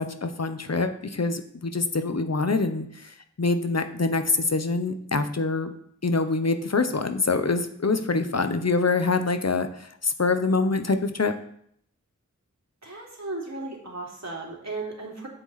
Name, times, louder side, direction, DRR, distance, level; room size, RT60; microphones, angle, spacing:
voice 1, 0.0-5.7 6.0-11.3, left 3 dB, 55° left, 8 dB, 0.9 m, -25 dB
voice 2, 12.8-15.3, right 2 dB, 60° right, -2 dB, 2.9 m, -35 dB
10.5 x 7.9 x 4.2 m, 0.67 s
wide cardioid pair, 55°, 30 cm